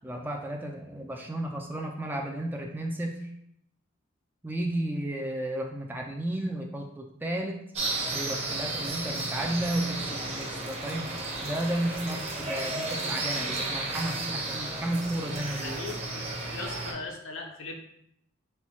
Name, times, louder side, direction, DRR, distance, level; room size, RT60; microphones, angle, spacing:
voice 1, 0.0-3.3 4.4-7.7 8.1-11.1 11.4-15.8, right 1 dB, 10° right, 1 dB, 0.4 m, -33 dB
sound 1, 7.7-16.9, right 2 dB, 30° right, 0.9 m, -33 dB
voice 2, 15.4-17.8, left 3 dB, 65° left, 2 dB, 0.7 m, -40 dB
4.3 x 2.3 x 4.3 m, 0.72 s
head